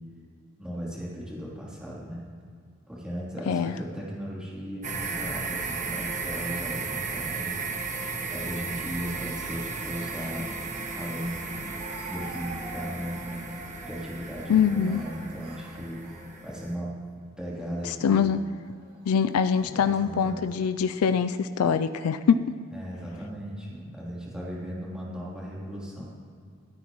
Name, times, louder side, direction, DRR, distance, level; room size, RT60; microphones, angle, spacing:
voice 1, 0.6-2.2 2.9-7.6 8.3-10.5 10.9-11.7 12.0-13.4 13.8-16.0 16.4-16.9 17.4-18.3 19.6-20.4 22.7-26.1, equal, 5° right, -7 dB, 3.1 m, -37 dB
voice 2, 3.5-3.8 14.5-15.0 17.8-18.4 19.1-22.4, left 7 dB, 90° left, 11 dB, 0.4 m, -23 dB
sound 1, 4.8-16.7, right 4 dB, 35° right, 1.1 m, -35 dB
Speech, 11.8-16.7 17.4-17.7 18.6-19.2, right 2 dB, 85° right, 3.1 m, -45 dB
26.5 x 9.4 x 3.0 m, 2.2 s
head